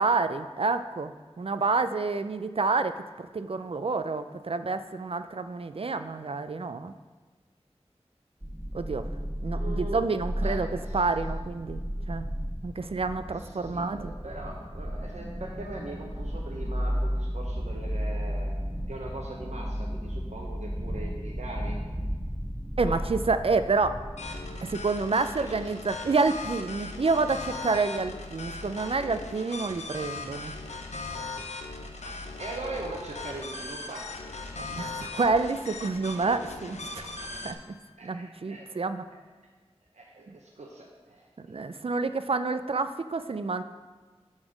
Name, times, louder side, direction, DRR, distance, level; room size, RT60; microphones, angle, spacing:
voice 1, 0.0-6.9 8.7-9.1 9.4-10.7 10.9-11.8 12.1-12.3 12.6-14.1 22.8-24.1 24.6-30.5 34.6-37.1 37.3-37.8 38.0-39.1 40.3-40.4 41.5-43.6, right 4 dB, 55° right, 10 dB, 0.4 m, -28 dB
sound 1, 8.4-24.7, equal, 20° right, 1.8 m, -34 dB
voice 2, 9.5-10.1 10.4-11.0 13.4-18.5 18.9-21.8 22.8-23.0 25.4-25.6 32.0-34.1 38.0-38.7 39.1-39.2 39.9-41.3, right 2 dB, 85° right, -1 dB, 0.8 m, -41 dB
sound 2, 24.2-37.5, left 3 dB, 80° left, 0.6 m, -39 dB
5.5 x 5.0 x 6.2 m, 1.4 s
wide cardioid pair, 50°, 11 cm